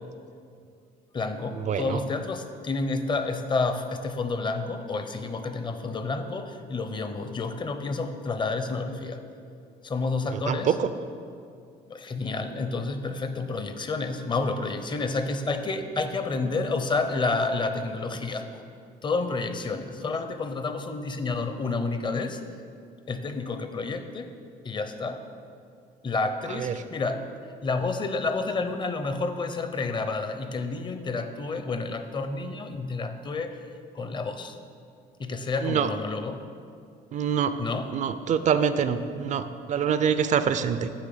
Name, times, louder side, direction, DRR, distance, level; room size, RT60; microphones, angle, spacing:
voice 1, 1.1-9.2 9.8-10.7 11.9-18.6 19.0-22.4 23.1-24.3 24.6-25.2 26.0-27.2 27.6-33.6 33.9-34.6 35.2-36.5 37.6-37.9, left 3 dB, 30° left, 8 dB, 0.6 m, -30 dB
voice 2, 1.6-2.0 10.5-10.9 26.6-26.7 35.6-35.9 37.1-37.5 37.9-40.9, right 7 dB, 45° right, 11 dB, 0.4 m, -25 dB
9.8 x 3.3 x 6.8 m, 2.3 s
cardioid pair, 110°, 17 cm